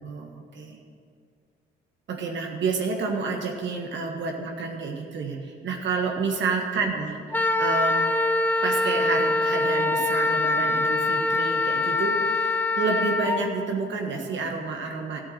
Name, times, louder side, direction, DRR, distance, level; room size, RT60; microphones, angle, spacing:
voice 1, 0.0-0.8 2.1-7.2 7.6-8.1 8.6-15.2, right 4 dB, 65° right, 2 dB, 1.6 m, -29 dB
Wind instrument woodwind instrument, 7.3-13.4, left 2 dB, 10° left, 0.9 m, -24 dB
13.0 x 8.2 x 7.6 m, 2.1 s
cardioid pair, 90°, 20 cm